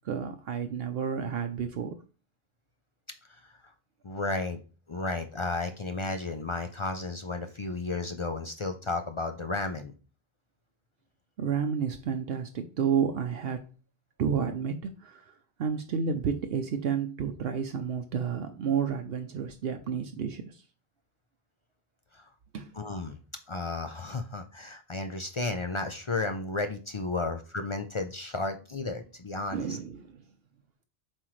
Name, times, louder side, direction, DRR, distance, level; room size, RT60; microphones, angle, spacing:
voice 1, 0.0-2.0 11.4-13.7 14.2-20.6 22.5-22.7 29.5-30.2, right 7 dB, 70° right, 0.8 m, -31 dB
voice 2, 4.0-4.6 4.9-9.9 22.1-22.3 22.7-23.2 23.5-29.8, left 3 dB, 40° left, 0.4 m, -33 dB
7.5 x 4.5 x 3.1 m
omnidirectional pair, 1.1 m